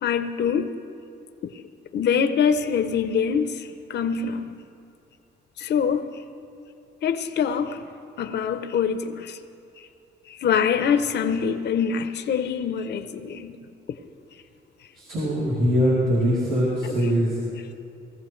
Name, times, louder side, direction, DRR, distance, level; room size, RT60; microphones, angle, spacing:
voice 1, 0.0-0.8 1.4-1.5 1.9-4.5 5.6-6.2 7.0-7.8 8.2-9.4 10.3-13.6 16.8-17.1, left 7 dB, 60° left, 0.7 m, -24 dB
voice 2, 15.0-17.4, equal, 85° right, 3.2 m, -22 dB
20.0 x 14.5 x 3.2 m
cardioid pair, 90°, 20 cm